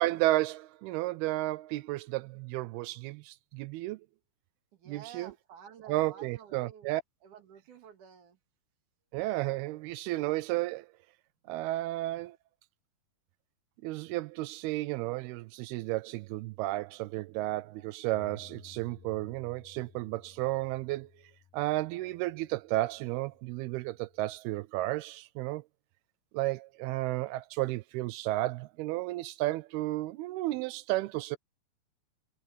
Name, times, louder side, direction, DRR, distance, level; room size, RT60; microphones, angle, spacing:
voice 1, 0.0-4.0 4.9-5.3 5.9-7.0 9.1-10.9 11.5-12.4 13.8-21.1 21.5-25.6 26.3-31.4, right 18 dB, 80° right, 2.3 m, -32 dB
voice 2, 4.7-6.9 7.2-8.4, right 8 dB, 55° right, 3.0 m, -51 dB
Bass guitar, 18.1-24.4, left 9 dB, 65° left, 2.2 m, -58 dB
omnidirectional pair, 5.0 m